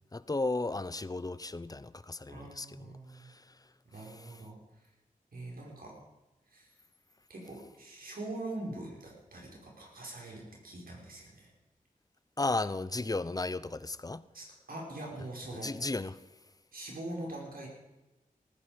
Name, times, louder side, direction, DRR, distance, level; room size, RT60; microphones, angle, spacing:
voice 1, 0.1-2.7 12.4-14.2 15.5-16.1, left 2 dB, 25° left, 0.7 m, -34 dB
voice 2, 2.3-3.3 3.9-4.9 5.3-5.9 6.5-6.7 7.3-11.5 14.3-15.7 16.7-17.7, right 2 dB, 85° right, 5.5 m, -43 dB
19.0 x 14.5 x 5.2 m
wide cardioid pair, 80°, 15 cm